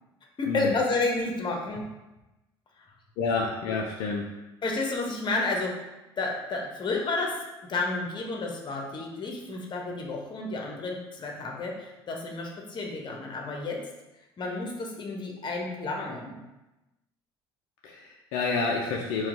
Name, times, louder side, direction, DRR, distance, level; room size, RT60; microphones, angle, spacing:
voice 1, 0.4-1.9 3.4-3.5 4.6-5.9 6.2-7.4 7.7-13.8 14.4-16.4, left 3 dB, 35° left, 0 dB, 1.0 m, -31 dB
voice 2, 3.2-4.3 17.8-19.3, left 4 dB, 60° left, -1 dB, 0.5 m, -29 dB
4.3 x 2.3 x 3.7 m, 1.0 s
hypercardioid pair, 60°, 13 cm